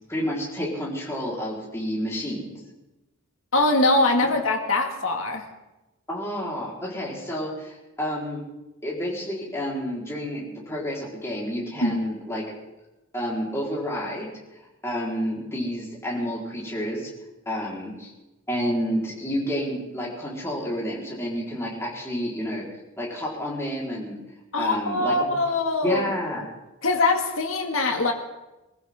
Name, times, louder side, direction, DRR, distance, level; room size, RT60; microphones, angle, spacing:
voice 1, 0.1-2.6 4.2-4.3 6.1-8.4 8.8-12.4 13.1-14.3 14.8-17.1 17.5-18.1 18.5-22.6 23.0-24.2 24.6-25.3 25.8-26.4, equal, 10° left, -5 dB, 4.4 m, -29 dB
voice 2, 3.5-5.5 11.8-12.0 24.5-26.0 26.8-28.1, left 2 dB, 70° left, 2 dB, 2.2 m, -22 dB
24.5 x 15.0 x 3.8 m, 1.0 s
head